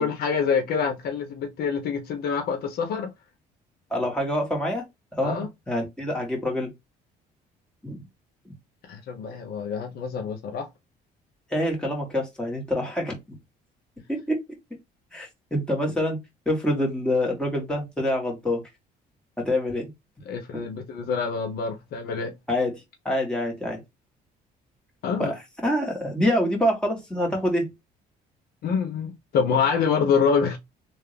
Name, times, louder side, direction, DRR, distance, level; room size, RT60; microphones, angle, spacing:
voice 1, 0.0-3.1 5.2-5.5 8.8-10.7 20.3-22.3 25.0-25.3 28.6-30.6, left 6 dB, 65° left, 0.9 m, -26 dB
voice 2, 3.9-4.9 5.1-6.7 7.8-8.0 8.5-8.6 11.5-13.2 14.1-14.4 15.1-16.2 16.5-18.6 19.5-19.9 22.5-22.7 23.1-23.8 25.2-27.7, left 1 dB, 5° left, 2.0 m, -26 dB
3.4 x 2.7 x 3.3 m
cardioid pair, 110°, 17 cm